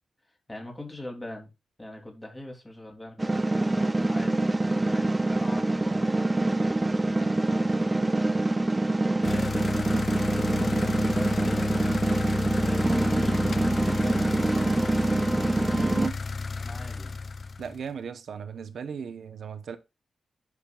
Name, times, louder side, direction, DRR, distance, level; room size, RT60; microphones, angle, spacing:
voice 1, 0.5-1.5 1.8-8.5 8.8-12.1 12.5-14.8 16.6-17.2, left 1 dB, 15° left, 3.2 m, -42 dB
sound 1, 3.2-16.1, right 2 dB, 20° right, 0.6 m, -25 dB
sound 2, 9.2-17.8, left 4 dB, 50° left, 0.5 m, -32 dB
voice 2, 15.7-16.2 17.6-19.8, right 6 dB, 75° right, 1.0 m, -36 dB
10.5 x 6.6 x 2.5 m
wide cardioid pair, 95°, 0 cm